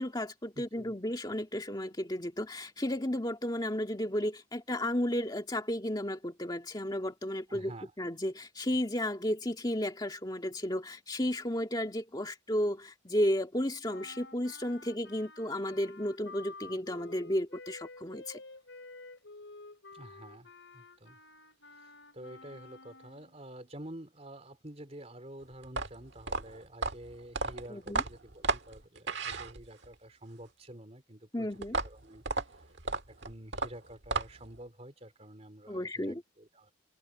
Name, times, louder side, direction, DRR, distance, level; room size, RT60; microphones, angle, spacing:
voice 1, 0.0-7.7 8.0-18.4 27.7-28.0 31.3-31.8 35.7-36.2, left 1 dB, 20° left, 2.1 m, -33 dB
voice 2, 0.6-0.9 7.5-7.9 19.9-21.2 21.7-31.5 31.8-32.7 33.1-36.7, right 1 dB, 30° right, 3.7 m, -49 dB
sound 1, 13.8-23.4, left 3 dB, 65° left, 5.7 m, -51 dB
sound 2, 25.6-29.9 31.6-34.6, right 3 dB, 55° right, 1.8 m, -34 dB
head